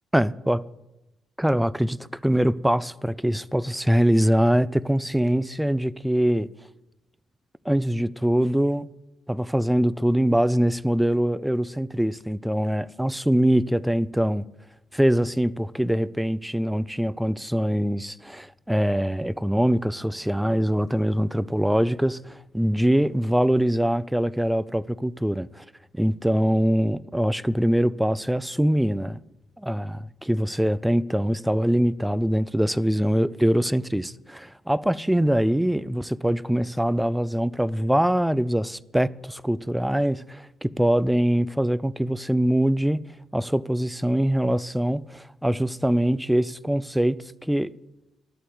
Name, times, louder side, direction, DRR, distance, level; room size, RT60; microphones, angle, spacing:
voice 1, 0.1-0.6 1.4-6.5 7.7-8.9 9.3-14.4 14.9-25.6 25.9-29.2 29.6-47.7, equal, 5° right, 0.4 m, -23 dB
11.5 x 8.2 x 7.9 m
figure-of-eight pair, 40°, 0 cm